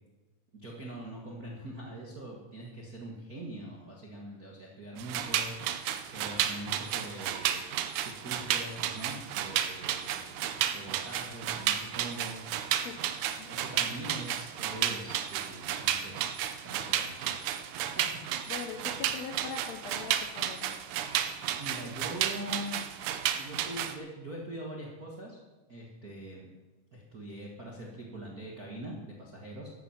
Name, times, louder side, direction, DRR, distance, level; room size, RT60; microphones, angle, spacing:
voice 1, 0.5-7.6 8.0-12.4 13.4-16.2 16.6-17.7 17.9-18.1 21.6-22.8 23.4-25.4 25.7-26.5 26.9-29.7, right 1 dB, 55° right, -2 dB, 1.0 m, -43 dB
sound 1, 5.0-24.0, right 10 dB, 85° right, 1.7 m, -32 dB
voice 2, 12.8-13.5 18.5-20.8, left 6 dB, 80° left, 5 dB, 1.5 m, -42 dB
13.5 x 10.5 x 5.8 m, 1.2 s
omnidirectional pair, 4.4 m